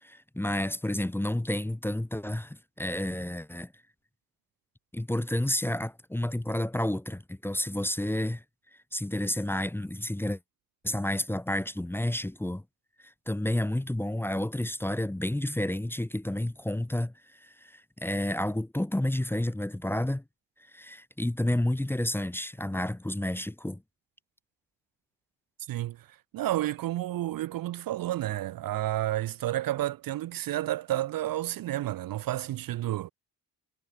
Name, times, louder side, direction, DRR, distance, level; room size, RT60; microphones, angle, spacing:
voice 1, 0.0-3.7 4.9-8.4 8.9-10.4 10.8-12.6 13.0-20.2 20.7-23.8, left 1 dB, 5° left, 0.7 m, -30 dB
voice 2, 25.7-33.1, right 14 dB, 55° right, 0.6 m, -31 dB
supercardioid pair, 60°, 41 cm